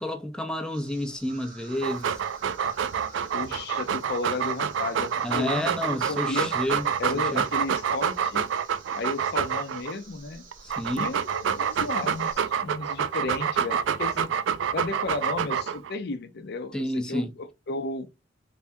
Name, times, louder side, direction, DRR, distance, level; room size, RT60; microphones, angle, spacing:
voice 1, 0.0-2.2 5.2-6.9 7.3-7.4 10.6-11.1 16.7-17.3, left 1 dB, 5° left, 0.5 m, -30 dB
sound 1, 0.7-12.4, right 4 dB, 50° right, 1.1 m, -49 dB
Dog, 1.7-9.9 10.5-15.9, right 7 dB, 90° right, 0.4 m, -27 dB
voice 2, 3.3-6.5 7.0-8.5 8.9-10.4 10.9-14.3 14.7-18.2, left 3 dB, 60° left, 0.5 m, -33 dB
3.4 x 3.4 x 2.7 m
head